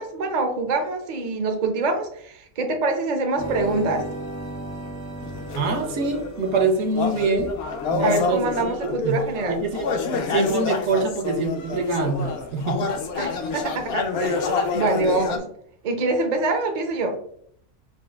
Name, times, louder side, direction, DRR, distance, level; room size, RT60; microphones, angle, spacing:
voice 1, 0.0-4.1 8.0-9.6 13.2-15.4 15.8-17.2, right 3 dB, 50° right, 4 dB, 0.5 m, -25 dB
sound 1, 3.4-7.6, right 1 dB, 90° left, 1.7 m, -35 dB
sound 2, 5.2-6.7 6.9-15.4, left 4 dB, 65° left, 0.6 m, -28 dB
voice 2, 5.5-7.5 7.9-9.2 9.5-9.9 10.3-12.9, right 3 dB, 70° right, 5 dB, 0.9 m, -25 dB
6.0 x 2.4 x 2.3 m, 0.65 s
omnidirectional pair, 1.5 m